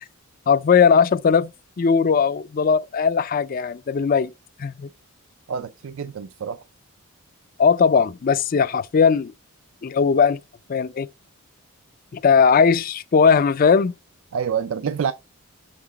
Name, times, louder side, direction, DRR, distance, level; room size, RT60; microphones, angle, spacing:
voice 1, 0.5-1.5 1.8-4.3 4.6-4.9 7.6-9.3 9.8-10.4 10.7-11.1 12.1-13.9, left 6 dB, 40° left, 0.4 m, -18 dB
voice 2, 5.5-6.6 14.3-15.1, right 7 dB, 65° right, 0.4 m, -27 dB
6.4 x 5.9 x 2.9 m
head